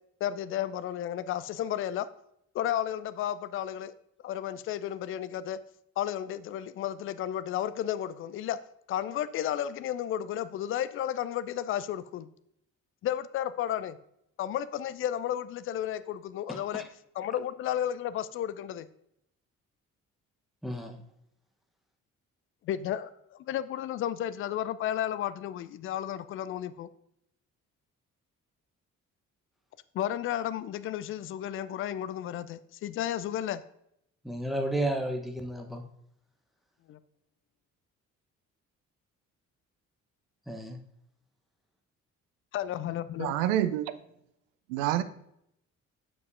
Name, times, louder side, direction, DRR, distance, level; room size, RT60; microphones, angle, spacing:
voice 1, 0.2-2.1 2.5-3.9 4.2-5.6 6.0-8.6 8.9-12.3 13.0-14.0 14.4-16.8 17.2-18.9 22.6-23.1 23.4-26.9 29.9-33.6 36.9-37.0 42.5-43.3, left 11 dB, 35° left, 15 dB, 0.4 m, -32 dB
voice 2, 16.5-16.8 20.6-21.0 34.2-35.8 40.5-40.8, right 1 dB, ahead, 3 dB, 0.9 m, -32 dB
voice 3, 43.2-43.9 44.7-45.0, right 12 dB, 65° right, 13 dB, 0.5 m, -27 dB
7.0 x 6.6 x 2.5 m, 0.76 s
figure-of-eight pair, 40°, 41 cm